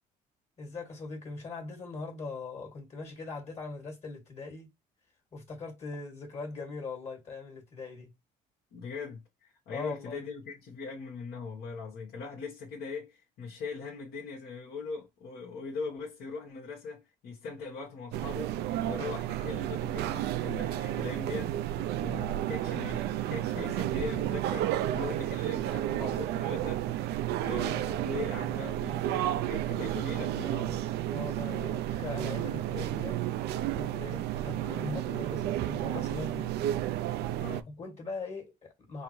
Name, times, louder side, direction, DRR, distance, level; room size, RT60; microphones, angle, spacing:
voice 1, 0.6-4.7 5.3-8.1 9.7-10.2 31.1-33.2 33.8-36.6 37.7-39.0, left 3 dB, 40° left, 1.8 m, -40 dB
voice 2, 8.7-30.8 37.4-37.7, left 4 dB, 65° left, 1.3 m, -41 dB
sound 1, 18.1-37.6, right 13 dB, 75° right, 0.4 m, -32 dB
5.4 x 2.1 x 3.1 m
cardioid pair, 110°, 17 cm